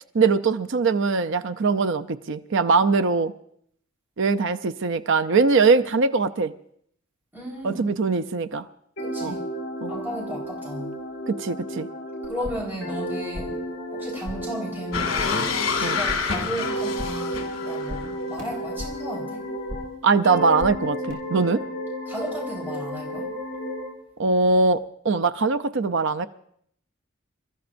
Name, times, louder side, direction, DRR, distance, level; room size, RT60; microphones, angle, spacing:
voice 1, 0.1-3.3 4.2-6.5 7.6-8.7 9.2-9.4 9.8-9.9 11.3-11.9 15.8-16.0 20.0-21.6 24.2-26.3, right 4 dB, 65° right, 13 dB, 0.5 m, -22 dB
voice 2, 7.3-7.9 9.0-9.4 9.9-11.0 12.2-13.6 13.9-19.5 22.1-23.3, right 1 dB, 10° right, -4 dB, 4.2 m, -34 dB
sound 1, 9.0-16.2 16.6-19.9 20.2-23.9, equal, 55° left, 5.2 m, -32 dB
sound 2, 12.2-12.8 13.1-13.7 14.0-14.6 14.9-15.5 15.8-16.4 16.7-17.3 17.6-19.1 19.4-20.0 20.3-21.1, equal, 45° right, 4.3 m, -39 dB
sound 3, 14.9-18.1, left 5 dB, 75° left, 2.4 m, -27 dB
29.0 x 14.0 x 2.6 m, 0.68 s
head